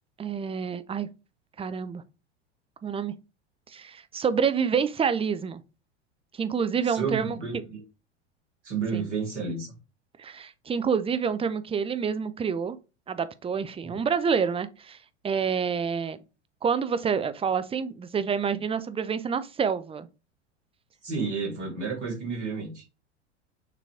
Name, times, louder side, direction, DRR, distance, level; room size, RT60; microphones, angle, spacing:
voice 1, 0.2-1.1 1.6-2.0 2.8-3.1 3.7-5.6 6.3-7.6 8.9-9.1 10.2-12.8 13.1-15.0 15.2-16.2 16.6-20.1, right 6 dB, 15° right, 0.7 m, -28 dB
voice 2, 6.8-7.8 8.6-9.7 13.8-14.0 21.0-22.9, right 5 dB, 80° right, 3.4 m, -31 dB
6.8 x 3.0 x 4.9 m
figure-of-eight pair, 80°, 35 cm